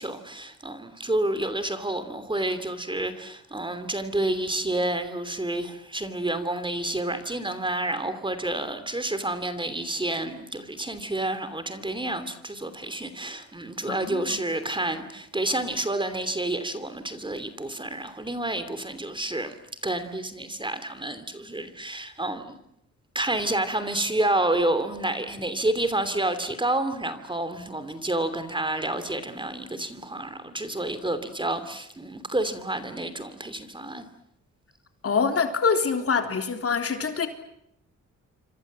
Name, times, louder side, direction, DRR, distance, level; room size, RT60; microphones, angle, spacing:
voice 1, 0.0-19.5 19.8-22.5 23.1-34.1, right 1 dB, 15° right, 11 dB, 2.9 m, -29 dB
voice 2, 13.9-14.4 35.0-37.3, left 5 dB, 45° left, 6 dB, 3.6 m, -25 dB
28.0 x 26.0 x 7.6 m, 0.79 s
cardioid pair, 105°, 31 cm